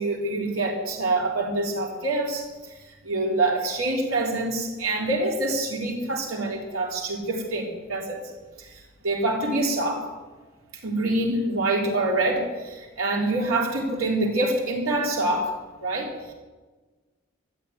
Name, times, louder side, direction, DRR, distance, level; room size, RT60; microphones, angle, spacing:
voice 1, 0.0-8.2 8.6-10.1 10.7-15.5 15.8-16.3, right 2 dB, 90° right, -1 dB, 3.8 m, -26 dB
13.5 x 11.5 x 9.2 m, 1.3 s
head